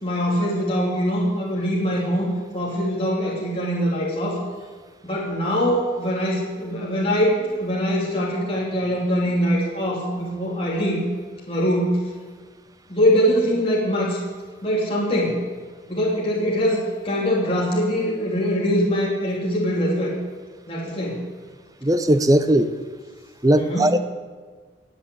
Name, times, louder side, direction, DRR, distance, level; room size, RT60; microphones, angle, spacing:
voice 1, 0.0-4.4 5.0-11.0 11.5-12.0 12.9-14.2 14.6-15.4 15.9-16.8 17.0-20.1 20.7-21.2 23.6-24.0, equal, 30° left, -5 dB, 3.4 m, -23 dB
voice 2, 21.8-22.7 23.4-24.0, right 1 dB, 20° right, 10 dB, 0.8 m, -18 dB
19.5 x 8.6 x 8.3 m, 1.5 s
head